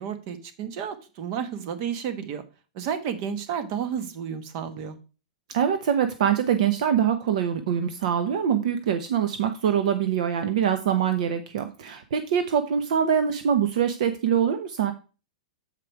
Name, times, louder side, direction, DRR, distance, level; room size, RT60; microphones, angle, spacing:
voice 1, 0.0-2.4 2.7-5.0, right 8 dB, 40° right, 10 dB, 1.2 m, -31 dB
voice 2, 5.5-14.9, right 8 dB, 60° right, 9 dB, 0.8 m, -24 dB
7.6 x 4.9 x 4.6 m, 0.32 s
hypercardioid pair, 150°, 4 cm